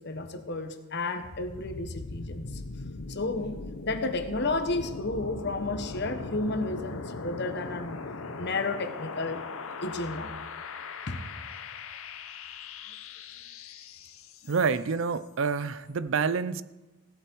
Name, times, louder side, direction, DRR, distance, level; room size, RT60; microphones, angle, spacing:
voice 1, 0.0-2.5 3.1-3.5 3.8-8.0 8.4-9.4 9.8-10.4 11.1-11.2, left 2 dB, 50° left, 8 dB, 1.2 m, -32 dB
sound 1, 1.2-15.0, left 3 dB, 75° left, 0.9 m, -40 dB
voice 2, 14.4-16.6, right 5 dB, 60° right, 15 dB, 0.5 m, -28 dB
16.5 x 11.5 x 4.6 m, 1.1 s
head